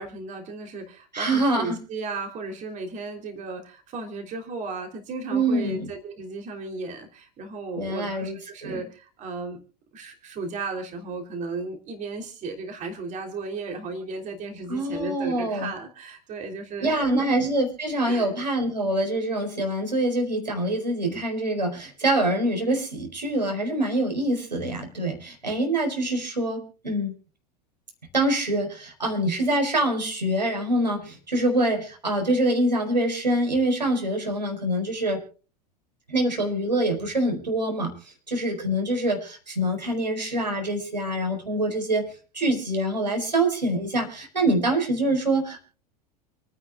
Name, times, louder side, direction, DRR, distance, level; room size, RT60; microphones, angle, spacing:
voice 1, 0.0-9.6 9.9-17.3 18.0-18.3, right 3 dB, 35° right, 5 dB, 3.3 m, -35 dB
voice 2, 1.1-1.7 5.3-5.9 7.8-8.4 8.6-8.8 14.7-15.7 16.8-27.1 28.1-35.2 36.1-37.9 38.3-42.1 42.3-45.7, right 1 dB, 85° right, 3 dB, 4.7 m, -25 dB
29.0 x 9.8 x 2.4 m, 0.36 s
figure-of-eight pair, 85°, 21 cm